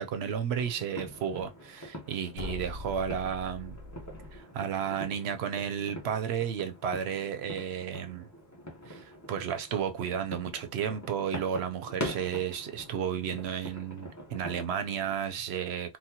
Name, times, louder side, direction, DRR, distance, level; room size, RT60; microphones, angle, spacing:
voice 1, 0.0-3.8 4.3-8.3 8.9-16.0, right 8 dB, 90° right, 0.9 m, -33 dB
sound 1, 0.6-15.1, equal, 15° left, 0.9 m, -44 dB
sound 2, 2.3-4.4, left 2 dB, 50° left, 0.8 m, -41 dB
4.0 x 2.2 x 2.8 m
omnidirectional pair, 1.1 m